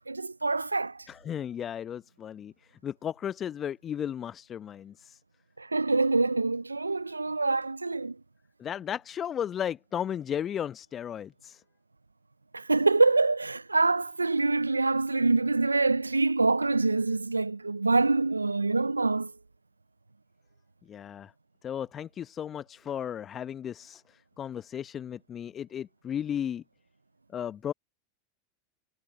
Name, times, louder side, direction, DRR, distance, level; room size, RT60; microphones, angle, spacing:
voice 1, 0.1-1.1 5.6-8.2 12.5-19.3, right 3 dB, 90° right, 0.5 m, -25 dB
voice 2, 1.1-5.2 8.6-11.6 20.9-21.3 21.6-26.6 27.3-27.7, left 9 dB, 30° left, 0.8 m, -35 dB
figure-of-eight pair, 85°, 0 cm